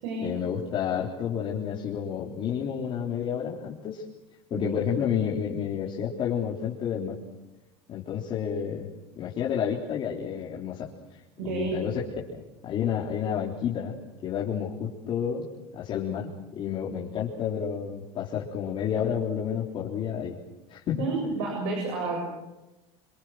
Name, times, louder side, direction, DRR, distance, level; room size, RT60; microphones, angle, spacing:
voice 1, 0.2-4.0 4.5-7.1 7.9-8.9 9.2-12.0 12.6-14.0 14.2-20.4 20.7-21.0, left 8 dB, 40° left, -5 dB, 3.8 m, -30 dB
voice 2, 11.4-11.9 20.9-22.2, right 3 dB, 75° right, 1 dB, 7.8 m, -30 dB
28.0 x 23.0 x 6.5 m, 1.0 s
supercardioid pair, 120°, 14 cm